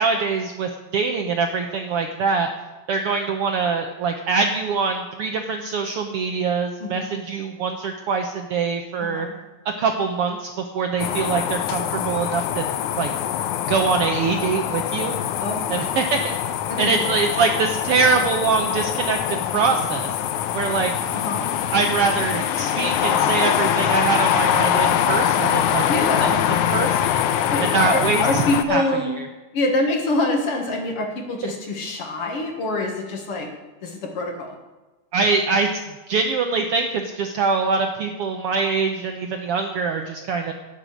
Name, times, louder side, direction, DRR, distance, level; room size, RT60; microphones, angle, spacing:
voice 1, 0.0-2.5 2.9-9.3 9.8-12.6 13.0-13.1 13.7-15.1 15.7-16.3 16.8-20.1 20.5-20.9 21.7-25.9 26.2-26.3 26.7-27.1 27.6-28.2 28.7-28.8 35.1-35.7 36.1-40.5, right 4 dB, 70° right, 4 dB, 1.4 m, -23 dB
voice 2, 6.8-7.2 9.0-9.3 15.4-15.9 16.7-17.5 21.1-21.5 25.9-26.4 27.5-29.2 29.5-33.5 33.8-34.6, left 2 dB, 55° left, 2 dB, 2.4 m, -25 dB
sound 1, 11.0-28.6, left 10 dB, 85° left, 2.1 m, -23 dB
17.5 x 6.7 x 6.3 m, 1.1 s
omnidirectional pair, 3.4 m